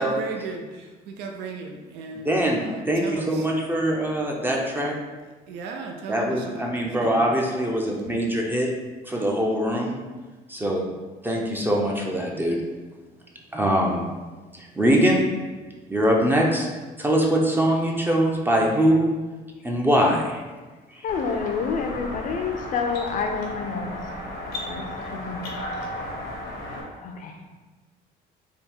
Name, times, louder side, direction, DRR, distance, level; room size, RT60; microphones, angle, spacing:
voice 1, 0.0-3.5 5.5-7.3, right 4 dB, 80° right, 2 dB, 0.5 m, -36 dB
voice 2, 2.2-5.0 6.1-8.7 9.0-10.0 10.5-10.8 11.2-12.6 13.5-14.1 14.5-15.2 15.9-16.7 17.0-19.2 19.6-20.4 20.9-21.0, equal, 10° right, -1 dB, 0.5 m, -22 dB
voice 3, 21.0-23.9 24.4-25.5 26.6-27.4, left 5 dB, 50° left, 4 dB, 0.5 m, -29 dB
sound 1, 21.1-26.8, left 1 dB, 80° left, 0.9 m, -34 dB
3.5 x 2.3 x 4.3 m, 1.3 s
cardioid pair, 110°, 17 cm